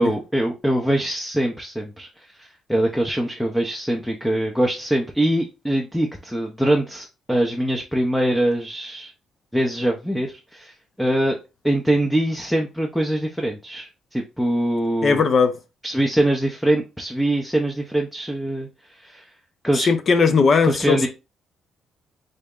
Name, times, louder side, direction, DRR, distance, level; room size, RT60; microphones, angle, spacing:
voice 1, 0.0-9.1 9.5-11.4 11.6-15.2 15.8-19.3 19.6-19.9 20.6-21.1, right 1 dB, ahead, 0.6 m, -23 dB
voice 2, 15.0-15.5 19.9-21.1, left 5 dB, 50° left, 0.5 m, -18 dB
3.9 x 2.1 x 3.6 m
cardioid pair, 90°, 0 cm